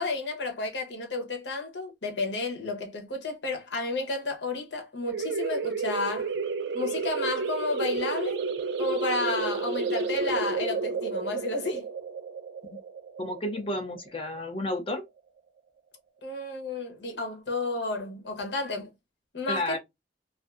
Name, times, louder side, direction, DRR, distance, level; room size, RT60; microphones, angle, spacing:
voice 1, 0.0-6.3 6.7-8.4 8.8-11.9 16.2-18.9 19.3-19.8, left 3 dB, 80° left, 0.9 m, -32 dB
sound 1, 5.1-14.4, right 4 dB, 80° right, 0.5 m, -31 dB
voice 2, 13.2-15.0 19.5-19.8, left 1 dB, 30° left, 0.5 m, -31 dB
2.5 x 2.5 x 2.3 m
head